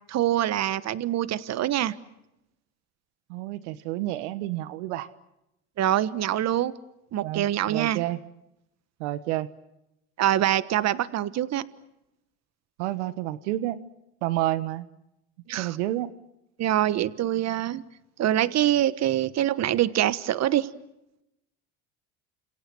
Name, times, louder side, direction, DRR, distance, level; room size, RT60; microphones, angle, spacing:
voice 1, 0.1-1.9 5.8-6.7 7.1-8.0 10.2-11.6 15.5-15.8 16.6-17.8 18.2-20.7, right 12 dB, 50° right, 16 dB, 1.4 m, -24 dB
voice 2, 3.3-5.1 7.2-8.2 9.0-9.5 12.8-13.8 14.2-14.9 15.6-16.1, right 15 dB, 85° right, 14 dB, 1.3 m, -29 dB
30.0 x 27.0 x 6.3 m, 0.88 s
supercardioid pair, 85°, 34 cm